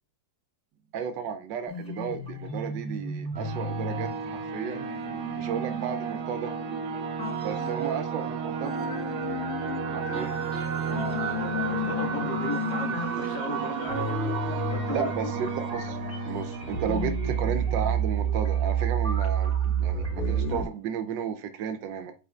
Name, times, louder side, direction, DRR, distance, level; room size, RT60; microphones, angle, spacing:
voice 1, 0.9-4.9 5.3-6.5 7.4-8.8 9.9-10.3 14.9-16.0 16.2-19.5 19.8-22.1, right 7 dB, 90° right, 8 dB, 1.4 m, -33 dB
sound 1, 1.7-8.3 8.6-20.6, right 3 dB, 5° left, 3.4 m, -31 dB
sound 2, 3.4-18.7, right 7 dB, 65° right, 1.3 m, -33 dB
voice 2, 7.3-7.8 9.8-10.1 10.8-15.3, left 1 dB, 75° left, 1 dB, 2.4 m, -37 dB
8.7 x 5.0 x 2.3 m, 0.33 s
omnidirectional pair, 1.9 m